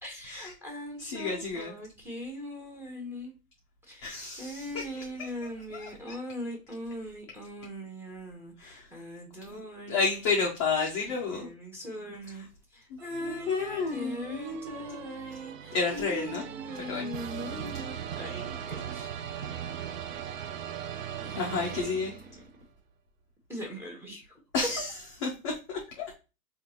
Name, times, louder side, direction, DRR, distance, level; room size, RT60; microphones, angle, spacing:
voice 1, 0.0-3.3 3.9-10.3 11.1-19.2 21.2-22.0 23.5-24.4, left 1 dB, 5° right, 0.8 m, -41 dB
voice 2, 1.0-1.7 4.0-6.1 8.6-8.9 9.5-9.6 9.9-11.5 12.9-15.1 15.7-16.4 16.7-17.1 21.4-22.2 24.5-24.9 25.2-26.2, left 4 dB, 20° left, 0.4 m, -32 dB
sound 1, 13.0-22.5, right 9 dB, 55° right, 0.5 m, -39 dB
3.8 x 2.4 x 2.8 m
hypercardioid pair, 115°, 47 cm